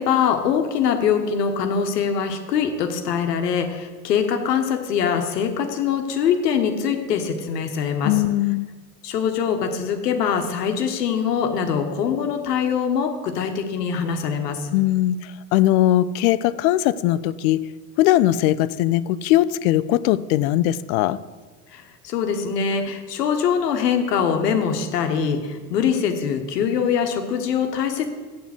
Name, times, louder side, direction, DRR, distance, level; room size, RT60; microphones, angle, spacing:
voice 1, 0.0-8.1 9.0-14.7 21.7-28.1, left 7 dB, 75° left, 5 dB, 1.3 m, -23 dB
voice 2, 8.0-8.7 14.7-17.6 18.0-21.2, left 14 dB, 60° left, 17 dB, 0.6 m, -20 dB
7.6 x 7.1 x 8.1 m, 1.3 s
figure-of-eight pair, 65°, 48 cm